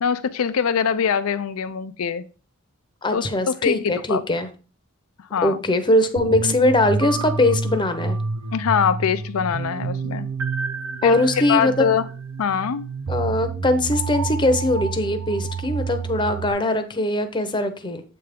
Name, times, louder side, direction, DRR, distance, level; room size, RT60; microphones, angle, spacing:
voice 1, 0.0-2.2 3.1-4.2 5.3-5.6 8.5-10.3 11.0-11.1 11.5-12.1 12.4-12.8, left 7 dB, 90° left, 11 dB, 0.4 m, -23 dB
voice 2, 3.0-4.5 5.4-8.2 11.0-11.9 13.1-18.0, left 1 dB, 20° left, 8 dB, 0.7 m, -21 dB
sound 1, 6.2-16.5, right 4 dB, 70° right, 0.6 m, -29 dB
7.7 x 3.4 x 5.0 m, 0.37 s
head